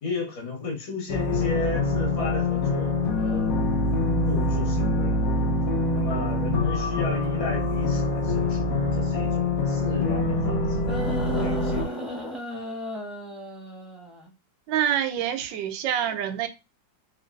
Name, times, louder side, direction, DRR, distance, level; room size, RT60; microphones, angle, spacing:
voice 1, 0.0-3.6 4.3-5.2 5.9-8.7 8.9-10.9 11.2-12.0, left 3 dB, 80° left, 2.2 m, -33 dB
sound 1, 1.1-11.9, left 2 dB, 55° left, 1.1 m, -25 dB
sound 2, 10.9-14.3 15.4-15.5, left 1 dB, ahead, 1.0 m, -34 dB
voice 2, 14.7-16.5, right 10 dB, 80° right, 1.2 m, -26 dB
4.4 x 3.0 x 2.5 m
omnidirectional pair, 2.1 m